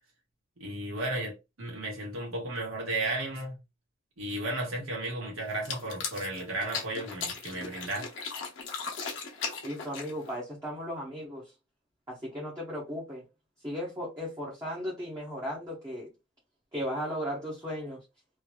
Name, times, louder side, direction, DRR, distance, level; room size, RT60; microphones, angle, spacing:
voice 1, 0.6-3.6 4.2-8.1, right 2 dB, 80° right, 1.5 m, -34 dB
sound 1, 5.5-10.4, left 5 dB, 60° left, 0.9 m, -37 dB
voice 2, 9.6-11.5 12.1-13.2 13.6-16.1 16.7-18.0, equal, 15° right, 0.9 m, -36 dB
3.2 x 2.6 x 2.2 m
head